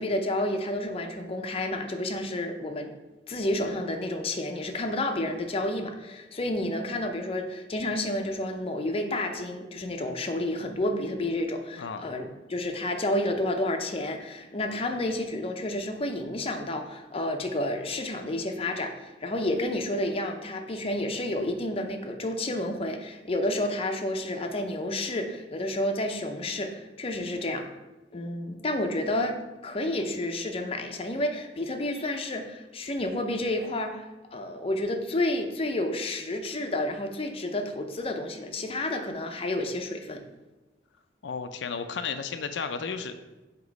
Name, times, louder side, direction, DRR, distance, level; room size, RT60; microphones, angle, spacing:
voice 1, 0.0-2.9 3.3-27.7 28.1-40.2, left 1 dB, 30° left, 4 dB, 0.6 m, -30 dB
voice 2, 41.2-43.2, left 5 dB, 75° left, 8 dB, 0.5 m, -33 dB
7.9 x 3.0 x 5.2 m, 1.1 s
head